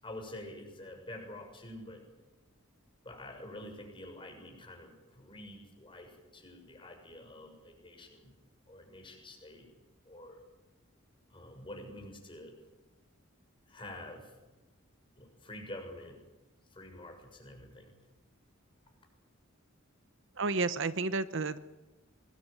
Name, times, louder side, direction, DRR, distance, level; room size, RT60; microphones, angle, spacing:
voice 1, 0.0-2.0 3.0-8.3 8.7-9.7 10.0-10.4 11.3-12.5 13.7-14.3 15.2-16.2 16.7-17.9, left 1 dB, 25° left, 3 dB, 6.7 m, -47 dB
voice 2, 20.4-21.6, right 3 dB, 60° right, 13 dB, 1.0 m, -31 dB
24.5 x 20.5 x 9.1 m, 1.1 s
head